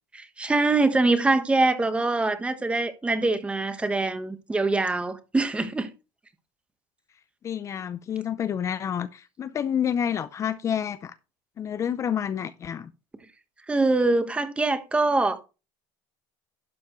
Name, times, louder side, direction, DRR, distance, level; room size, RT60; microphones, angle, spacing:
voice 1, 0.1-5.9 13.7-15.4, right 2 dB, 10° right, 1.2 m, -24 dB
voice 2, 7.4-11.1 11.6-12.9, left 8 dB, 30° left, 0.6 m, -29 dB
11.5 x 7.1 x 3.1 m
cardioid pair, 130°, 10 cm